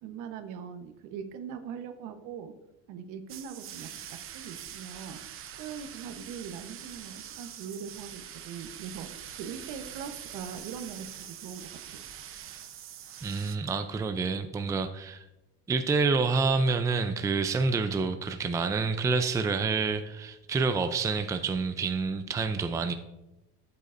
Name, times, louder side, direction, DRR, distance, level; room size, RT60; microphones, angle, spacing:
voice 1, 0.0-2.5 2.9-3.9 4.3-5.2 5.5-12.0, right 7 dB, 70° right, 8 dB, 1.1 m, -41 dB
sound 1, 3.3-13.6, right 10 dB, 40° right, 0.8 m, -44 dB
voice 2, 13.2-15.2 15.7-22.9, right 4 dB, 10° right, 8 dB, 0.4 m, -28 dB
12.0 x 8.1 x 2.6 m, 0.94 s
cardioid pair, 135°, 32 cm